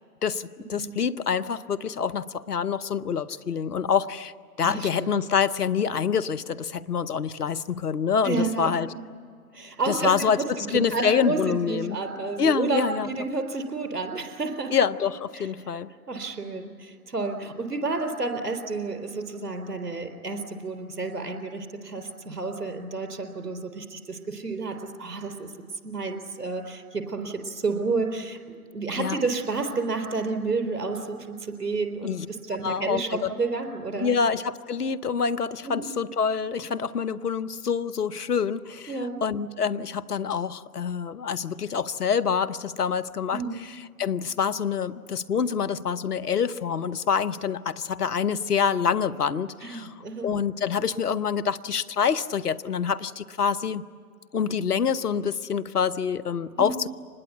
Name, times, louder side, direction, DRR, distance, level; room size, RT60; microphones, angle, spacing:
voice 1, 0.2-4.3 4.6-8.9 9.9-12.0 12.4-13.1 14.7-15.9 29.0-29.2 32.0-32.3 32.6-33.3 34.0-38.9 39.2-49.9 50.2-53.8 54.3-56.9, left 7 dB, 80° left, 14 dB, 0.9 m, -26 dB
voice 2, 4.6-5.1 8.2-9.0 9.5-14.7 15.3-15.5 16.1-25.5 25.8-28.4 28.7-34.1 35.6-36.0 38.9-39.2 43.3-43.6 49.6-50.3 56.6-56.8, right 3 dB, 80° right, 6 dB, 3.9 m, -30 dB
25.5 x 21.0 x 8.2 m, 2.2 s
figure-of-eight pair, 120°, 46 cm